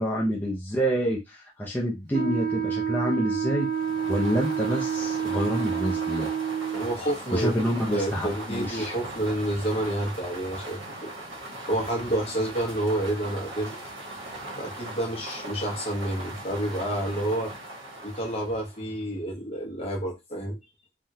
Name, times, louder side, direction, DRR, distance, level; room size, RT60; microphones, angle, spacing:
voice 1, 0.0-3.7 4.1-6.3 7.3-8.9, equal, 10° left, 0.6 m, -27 dB
Wind instrument woodwind instrument, 2.1-7.0, right 8 dB, 45° right, 0.3 m, -28 dB
sound 1, 3.6-19.0, right 1 dB, 80° right, 1.2 m, -39 dB
voice 2, 6.7-7.5 7.9-11.1 11.7-13.8 14.6-17.5 18.0-20.6, right 1 dB, 35° left, 1.0 m, -29 dB
3.5 x 2.3 x 2.7 m
head